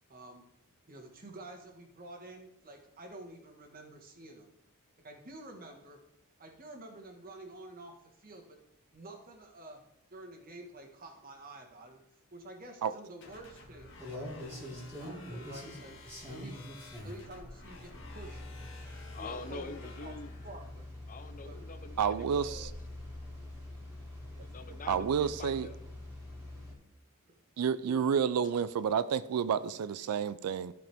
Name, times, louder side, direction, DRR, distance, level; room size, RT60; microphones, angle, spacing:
voice 1, 0.1-0.4 0.9-4.5 5.0-6.0 6.4-8.6 8.9-9.8 10.1-12.0 12.3-14.0 14.4-16.0 16.3-16.6 17.0-18.4 19.2-20.1 20.4-20.9 21.4-21.6 27.3-27.4 27.9-28.0, right 1 dB, 40° right, 1.5 m, -49 dB
sound 1, 13.2-20.7, left 3 dB, 60° left, 1.9 m, -53 dB
sound 2, 13.6-26.7, left 1 dB, 10° right, 2.4 m, -45 dB
voice 2, 19.1-20.3 21.1-22.7 24.4-25.8, left 3 dB, 35° left, 0.5 m, -45 dB
voice 3, 22.0-22.7 24.9-25.7 27.6-30.7, right 7 dB, 90° right, 0.4 m, -30 dB
13.5 x 5.0 x 3.5 m
head